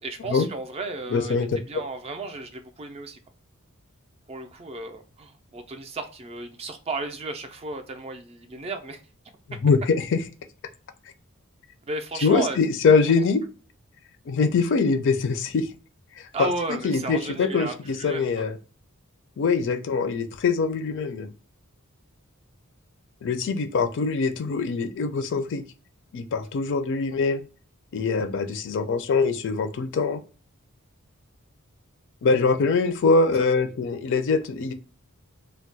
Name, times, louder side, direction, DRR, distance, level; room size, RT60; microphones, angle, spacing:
voice 1, 0.0-1.4 1.7-3.2 4.3-9.0 11.9-12.6 16.3-18.4, right 3 dB, 30° right, 7 dB, 0.4 m, -34 dB
voice 2, 1.1-1.6 9.6-10.2 12.2-13.4 14.3-15.7 16.2-16.5 16.8-18.5 19.4-21.3 23.2-25.6 26.1-27.4 27.9-30.2 32.2-34.7, left 4 dB, 55° left, 9 dB, 0.4 m, -23 dB
2.3 x 2.1 x 3.9 m, 0.37 s
head